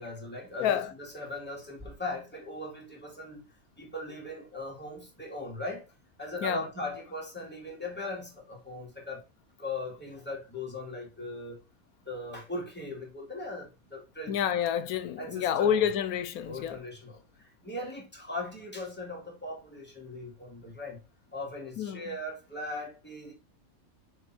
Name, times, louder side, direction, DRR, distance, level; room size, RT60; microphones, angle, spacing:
voice 1, 0.0-3.4 3.8-5.9 6.2-9.2 9.6-11.6 12.0-14.4 15.2-15.9 16.4-17.2 17.6-21.0 21.3-23.3, left 2 dB, 5° left, 2.4 m, -39 dB
voice 2, 0.6-0.9 6.4-6.7 14.3-16.8 21.8-22.2, left 9 dB, 85° left, 1.1 m, -29 dB
6.7 x 3.7 x 4.3 m
omnidirectional pair, 1.5 m